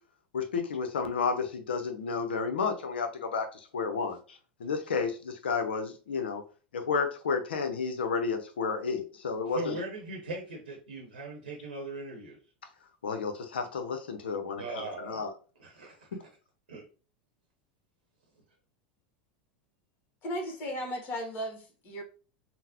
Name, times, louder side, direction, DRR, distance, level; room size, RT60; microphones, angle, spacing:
voice 1, 0.3-6.4 6.7-9.8 13.0-15.3, left 5 dB, 80° left, 0.6 m, -32 dB
voice 2, 9.4-12.4 14.6-15.3 15.6-16.1 16.7-16.8, right 2 dB, 80° right, 0.8 m, -39 dB
voice 3, 20.2-22.0, equal, 40° left, 1.2 m, -35 dB
3.8 x 2.0 x 2.8 m
hypercardioid pair, 90°, 6 cm